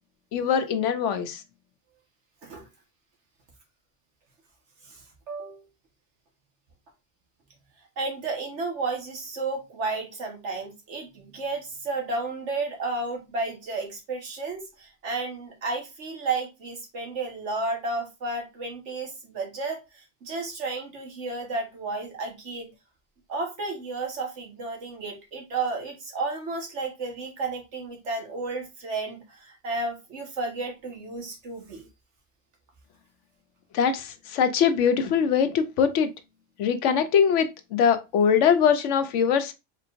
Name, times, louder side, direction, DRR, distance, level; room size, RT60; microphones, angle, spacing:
voice 1, 0.3-1.4 33.7-36.1 36.6-39.5, left 7 dB, 80° left, 1.0 m, -22 dB
voice 2, 4.8-5.6 8.0-22.7 23.3-31.9, right 3 dB, 70° right, 1.6 m, -32 dB
4.4 x 3.7 x 2.5 m
omnidirectional pair, 1.2 m